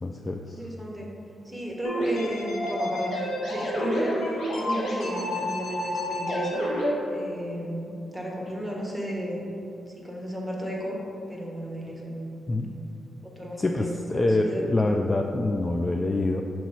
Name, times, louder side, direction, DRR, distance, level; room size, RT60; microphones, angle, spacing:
voice 1, 0.0-0.6 12.5-12.8 13.6-16.4, left 2 dB, 25° left, 2 dB, 0.3 m, -26 dB
voice 2, 0.5-1.1 1.4-6.6 7.1-9.4 9.9-11.0 11.3-12.4 13.4-14.9, equal, ahead, -3 dB, 1.3 m, -33 dB
sound 1, 1.8-6.9, equal, 85° left, 1.4 m, -29 dB
6.1 x 3.0 x 5.6 m, 2.8 s
cardioid pair, 80°, 0 cm